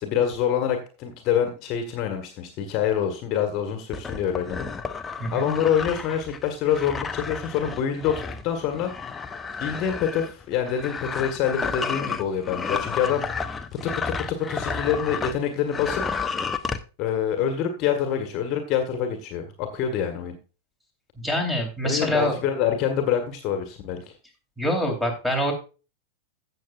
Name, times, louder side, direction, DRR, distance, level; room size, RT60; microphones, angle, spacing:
voice 1, 0.0-4.7 5.3-8.9 9.6-16.0 17.0-20.3 21.8-24.1, left 8 dB, 40° left, 5 dB, 1.6 m, -26 dB
sound 1, 3.9-15.4 15.7-16.8, left 5 dB, 15° left, 0.7 m, -31 dB
voice 2, 21.2-22.3 24.6-25.5, equal, 5° right, 3 dB, 3.2 m, -25 dB
16.0 x 6.7 x 2.5 m, 0.33 s
figure-of-eight pair, 90°, 0 cm